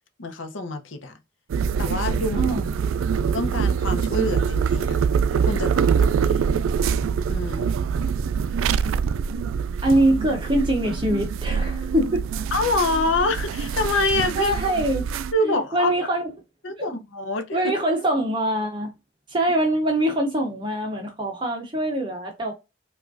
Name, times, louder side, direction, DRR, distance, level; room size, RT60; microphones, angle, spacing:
voice 1, 0.2-1.1 1.8-2.5 3.2-5.0 5.5-6.4 7.3-7.7 12.5-14.5 15.3-15.9 16.6-17.6, left 2 dB, 80° left, 0.7 m, -26 dB
sound 1, 1.5-15.3, right 6 dB, 90° right, 0.3 m, -24 dB
voice 2, 2.4-2.7 9.8-12.3 14.4-15.0 15.4-16.3 16.8-17.0 17.5-18.9 19.3-22.5, right 1 dB, 25° right, 0.7 m, -23 dB
4.9 x 2.4 x 2.5 m
head